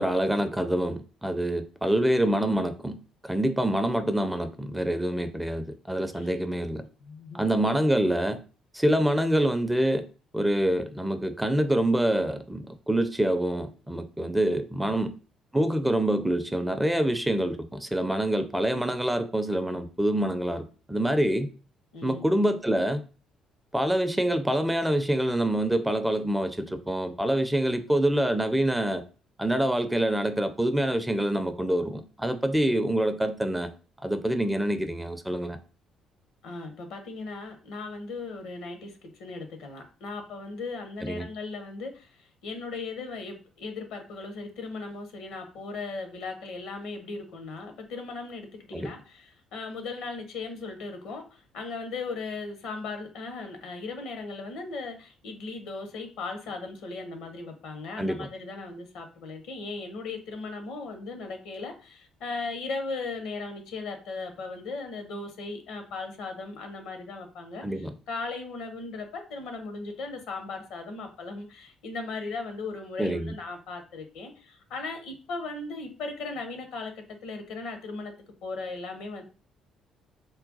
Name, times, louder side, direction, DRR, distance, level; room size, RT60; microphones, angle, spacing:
voice 1, 0.0-3.0 3.2-6.8 7.3-8.4 8.7-10.1 10.3-15.1 15.5-21.5 22.0-23.0 23.7-29.0 29.4-33.7 34.0-35.6 41.0-41.3 48.7-48.9 58.0-58.3 67.6-67.9 73.0-73.3, right 1 dB, 5° right, 9 dB, 0.5 m, -26 dB
voice 2, 7.0-7.4 21.9-22.2 36.4-38.9 39.2-78.1 78.4-79.2, left 3 dB, 60° left, 6 dB, 0.7 m, -37 dB
3.8 x 2.2 x 3.8 m, 0.36 s
figure-of-eight pair, 45°, 0 cm